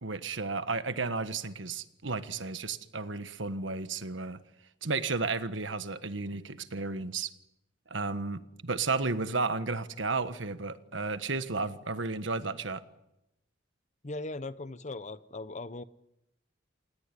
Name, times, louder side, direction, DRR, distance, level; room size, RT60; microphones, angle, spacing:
voice 1, 0.0-4.4 4.8-7.3 7.9-12.8, right 4 dB, 75° right, 11 dB, 1.5 m, -33 dB
voice 2, 14.0-15.8, left 2 dB, 40° left, 15 dB, 0.9 m, -39 dB
28.0 x 18.5 x 9.9 m, 0.88 s
head